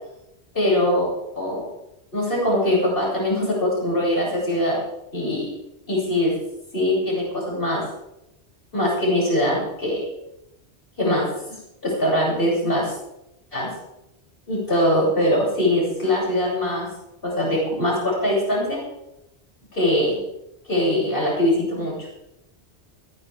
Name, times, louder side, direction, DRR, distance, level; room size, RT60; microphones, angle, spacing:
voice 1, 0.5-1.1 1.3-1.6 2.1-4.8 5.1-5.5 5.9-6.3 6.7-7.9 8.7-10.1 11.0-12.9 13.5-13.7 14.5-16.9 17.2-18.8 19.7-20.2 20.7-22.0, left 1 dB, 55° left, -5 dB, 8.0 m, -22 dB
20.5 x 16.0 x 3.7 m, 0.84 s
omnidirectional pair, 1.1 m